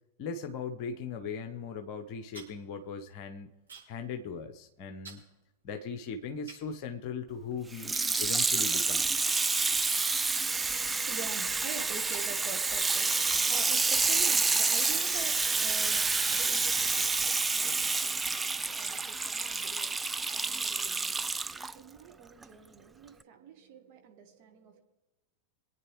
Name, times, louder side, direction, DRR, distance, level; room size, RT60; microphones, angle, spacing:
voice 1, 0.2-3.5 3.9-5.2 5.6-7.9 8.2-9.1, left 5 dB, 45° left, 6 dB, 0.8 m, -38 dB
sound 1, 2.0-4.1 4.4-4.7 5.0-5.3 5.9-6.0 6.5-7.4 7.9-8.8 9.2-9.6 9.8-10.8 11.1-11.2 11.5-12.5 12.8-12.9 13.5-18.3 18.9-19.3 19.8-20.9, right 4 dB, 75° right, 5.8 m, -53 dB
Water tap faucet / Sink (filling or washing), 7.7-21.7 22.4-22.5, right 4 dB, 10° right, 0.3 m, -29 dB
voice 2, 10.4-24.8, right 7 dB, 45° right, 5 dB, 1.8 m, -46 dB
26.0 x 9.2 x 3.2 m, 1.0 s
figure-of-eight pair, 90°, 0 cm